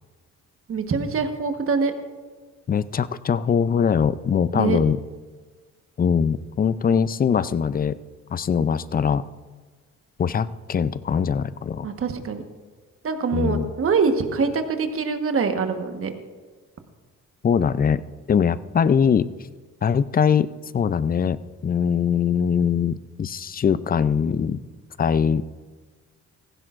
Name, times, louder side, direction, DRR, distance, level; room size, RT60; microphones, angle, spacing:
voice 1, 0.7-1.9 4.5-4.8 11.8-12.4 13.0-16.1, right 5 dB, 45° right, 6 dB, 1.3 m, -24 dB
voice 2, 2.7-5.0 6.0-8.0 8.3-9.2 10.2-11.9 13.3-13.7 17.4-18.0 18.3-19.3 19.8-24.6 25.0-25.4, left 7 dB, 30° left, 16 dB, 0.4 m, -22 dB
16.5 x 15.5 x 2.5 m, 1.4 s
cardioid pair, 90°, 30 cm